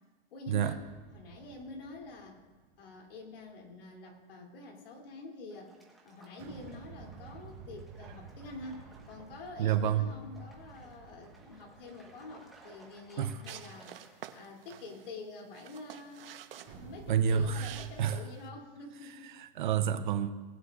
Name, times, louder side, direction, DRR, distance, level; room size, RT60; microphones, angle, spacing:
voice 1, 0.3-0.8 1.1-2.4 2.8-5.7 6.0-16.2 16.6-19.4, left 3 dB, 70° left, 3.2 m, -47 dB
sound 1, 0.6-3.2 6.4-13.6 16.7-17.9, right 5 dB, 30° right, 3.0 m, -52 dB
sound 2, 5.5-14.1, right 3 dB, ahead, 1.4 m, -59 dB
voice 2, 9.6-10.1 13.2-13.3 17.1-17.7 18.0-18.2 19.3-20.3, right 8 dB, 55° right, 0.8 m, -28 dB
sound 3, 13.5-18.5, right 10 dB, 70° right, 1.0 m, -50 dB
19.5 x 9.8 x 2.5 m
supercardioid pair, 170°, 29 cm